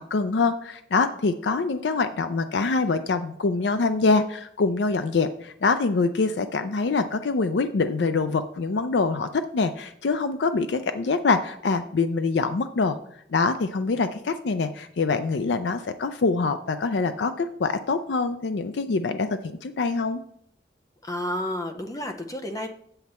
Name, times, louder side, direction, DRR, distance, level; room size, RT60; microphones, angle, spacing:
voice 1, 0.0-13.0 13.3-20.2, left 4 dB, 75° left, 9 dB, 0.5 m, -25 dB
voice 2, 21.0-22.7, left 1 dB, 20° left, 5 dB, 0.6 m, -31 dB
8.1 x 7.8 x 4.3 m, 0.69 s
head